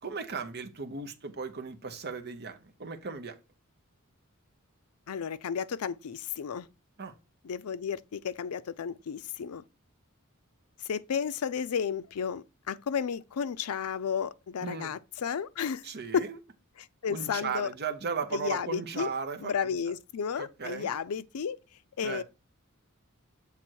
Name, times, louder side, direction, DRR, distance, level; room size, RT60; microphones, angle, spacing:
voice 1, 0.0-3.4 7.0-7.1 14.6-14.9 15.8-16.4 17.1-19.8 20.4-20.9 22.0-22.2, right 5 dB, 50° right, 0.9 m, -36 dB
voice 2, 5.1-6.7 7.4-9.6 10.8-15.8 16.1-16.3 16.8-17.7 18.3-19.1 19.4-21.6 22.0-22.2, left 7 dB, 80° left, 0.4 m, -32 dB
7.6 x 3.5 x 4.5 m
head